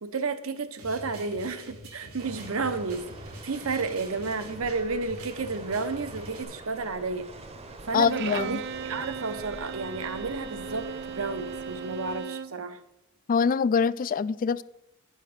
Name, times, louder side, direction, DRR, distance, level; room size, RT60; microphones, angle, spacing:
voice 1, 0.0-3.1 3.4-7.3 7.8-12.8, right 4 dB, 70° right, 11 dB, 0.8 m, -31 dB
sound 1, 0.8-6.4, right 1 dB, 85° right, 1.9 m, -45 dB
sound 2, 2.2-12.2, right 2 dB, 30° right, 0.8 m, -45 dB
voice 2, 7.9-8.6 13.3-14.6, left 6 dB, 40° left, 18 dB, 0.3 m, -24 dB
Bowed string instrument, 8.1-12.6, right 6 dB, 55° right, 0.4 m, -37 dB
10.5 x 6.5 x 5.1 m, 0.85 s
head